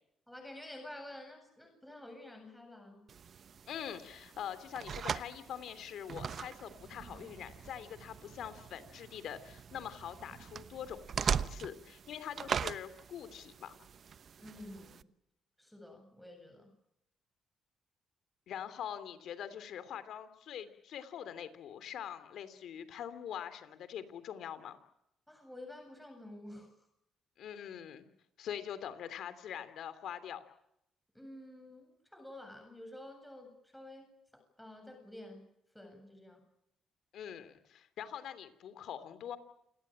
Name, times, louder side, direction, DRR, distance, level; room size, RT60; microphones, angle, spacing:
voice 1, 0.3-3.1 14.4-15.1 15.6-16.7 25.3-26.7 31.1-34.1 34.3-35.5 35.7-36.4, left 1 dB, 5° left, 4 dB, 7.9 m, -50 dB
sound 1, 3.1-15.0, right 7 dB, 50° right, 0.9 m, -41 dB
voice 2, 3.7-13.7 18.5-24.8 27.4-28.1 28.4-30.4 37.1-39.4, left 9 dB, 75° left, 13 dB, 3.0 m, -44 dB
29.0 x 18.5 x 8.9 m, 0.79 s
cardioid pair, 90°, 0 cm